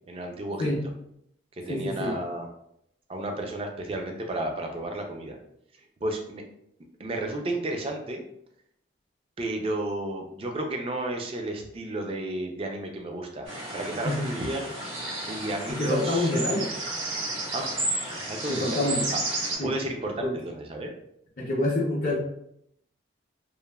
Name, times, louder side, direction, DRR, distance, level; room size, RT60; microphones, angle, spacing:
voice 1, 0.1-0.6 1.5-2.5 3.1-5.4 6.0-6.4 7.0-8.3 9.4-14.7 15.2-16.5 17.5-17.7 18.2-18.9 19.6-20.9, right 1 dB, 30° right, 3 dB, 0.3 m, -32 dB
voice 2, 1.7-2.1 14.0-14.2 15.7-16.7 18.5-19.0 19.6-19.7 20.2-20.3 21.4-22.2, left 1 dB, 45° left, -6 dB, 0.5 m, -26 dB
sound 1, 13.5-19.6, right 2 dB, 85° right, 1.3 m, -32 dB
3.0 x 2.1 x 2.2 m, 0.74 s
head